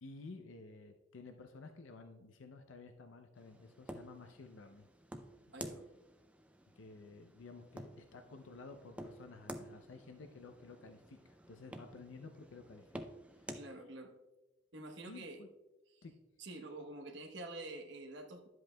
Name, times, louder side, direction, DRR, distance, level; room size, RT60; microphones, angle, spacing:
voice 1, 0.0-4.9 6.8-12.9 13.3-13.6 15.1-15.5 16.0-16.1, left 3 dB, 75° left, 6 dB, 0.5 m, -53 dB
sound 1, 3.4-13.7, right 1 dB, 5° right, 0.3 m, -51 dB
voice 2, 5.5-5.8 13.5-14.1 14.7-15.4 15.9-16.0 16.4-18.5, right 2 dB, 60° right, 4 dB, 1.0 m, -47 dB
10.5 x 7.7 x 2.2 m, 1.1 s
head